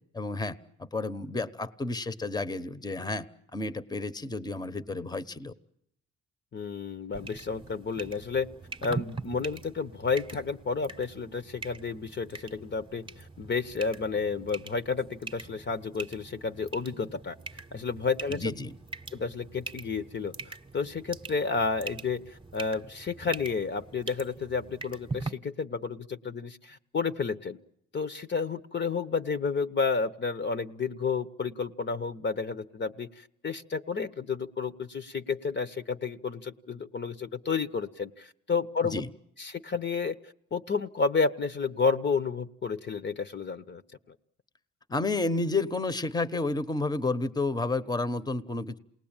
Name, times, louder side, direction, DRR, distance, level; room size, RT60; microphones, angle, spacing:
voice 1, 0.1-3.3 3.5-5.5 18.3-18.8 38.8-39.1 44.9-48.8, left 3 dB, 15° left, 14 dB, 1.0 m, -31 dB
voice 2, 6.5-8.5 8.8-17.4 17.7-18.5 19.1-27.6 27.9-39.0 39.4-40.2 40.5-43.8, left 5 dB, 35° left, 11 dB, 1.0 m, -31 dB
sound 1, 7.1-25.3, right 4 dB, 15° right, 1.0 m, -43 dB
28.0 x 19.5 x 8.9 m, 0.75 s
cardioid pair, 90°, 30 cm